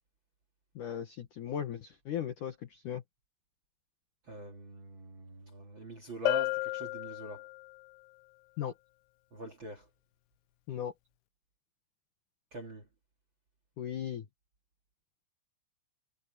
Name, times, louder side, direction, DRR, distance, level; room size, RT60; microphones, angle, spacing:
voice 1, 0.8-3.0 8.6-8.7 10.7-10.9 13.8-14.3, left 9 dB, 65° left, 2.1 m, -37 dB
voice 2, 4.3-7.5 9.3-9.9 12.5-12.9, right 2 dB, 40° right, 2.0 m, -43 dB
Bell, 6.3-7.8, left 20 dB, 85° left, 2.4 m, -33 dB
omnidirectional pair, 5.2 m